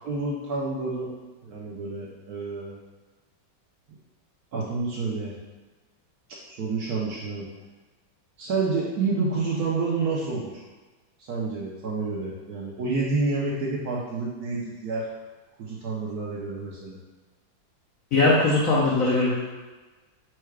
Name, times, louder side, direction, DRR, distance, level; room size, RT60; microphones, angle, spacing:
voice 1, 0.0-2.8 4.5-5.3 6.5-7.5 8.4-10.6 11.2-15.1 15.6-17.0, right 3 dB, 65° right, -4 dB, 1.0 m, -29 dB
voice 2, 18.1-19.4, left 2 dB, 65° left, -6 dB, 0.8 m, -20 dB
4.6 x 2.2 x 4.6 m, 1.2 s
omnidirectional pair, 2.1 m